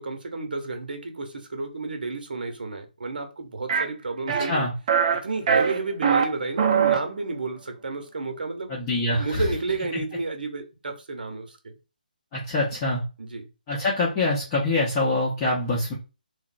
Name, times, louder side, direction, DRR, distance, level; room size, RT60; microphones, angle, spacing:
voice 1, 0.0-4.7 5.2-8.7 9.1-11.7 13.2-13.5, right 3 dB, 70° right, 0.7 m, -31 dB
sound 1, 3.7-3.8 4.3-4.6 4.9-5.2 5.5-6.2 6.6-7.0, right 7 dB, 35° right, 0.4 m, -21 dB
voice 2, 8.7-9.5 9.9-10.0 12.3-13.0 13.7-15.9, left 2 dB, 20° left, 0.7 m, -25 dB
3.0 x 2.0 x 2.5 m
figure-of-eight pair, 155°, 5 cm